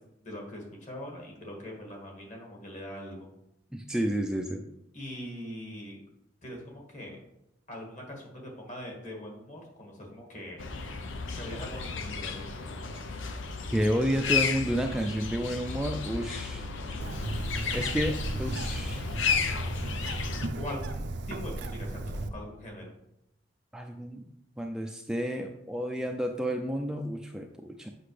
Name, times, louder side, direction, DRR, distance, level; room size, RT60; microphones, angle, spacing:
voice 1, 0.2-3.3 4.9-6.0 6.4-7.2 7.7-10.6 11.3-12.5 20.6-22.8, left 1 dB, 40° left, 0 dB, 1.9 m, -42 dB
voice 2, 3.7-4.6 13.7-16.7 17.7-19.1 23.7-24.2 24.6-27.9, equal, 5° right, 3 dB, 0.4 m, -31 dB
sound 1, 10.6-20.5, left 5 dB, 90° left, 0.7 m, -33 dB
Bird, 17.0-22.3, right 2 dB, 65° right, 0.6 m, -35 dB
7.9 x 5.7 x 3.3 m, 0.82 s
head